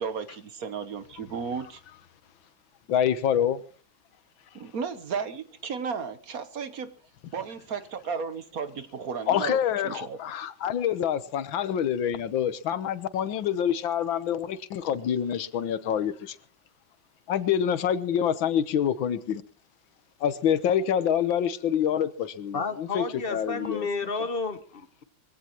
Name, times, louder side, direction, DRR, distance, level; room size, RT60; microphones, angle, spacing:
voice 1, 0.0-1.8 4.5-6.9 7.3-9.6 9.8-10.2, right 6 dB, 55° right, 1.3 m, -34 dB
voice 2, 2.9-3.6 9.3-16.4 17.3-19.4 20.2-23.9, left 9 dB, 90° left, 1.8 m, -26 dB
voice 3, 22.5-25.0, left 4 dB, 35° left, 1.0 m, -31 dB
22.5 x 16.0 x 3.0 m
omnidirectional pair, 2.1 m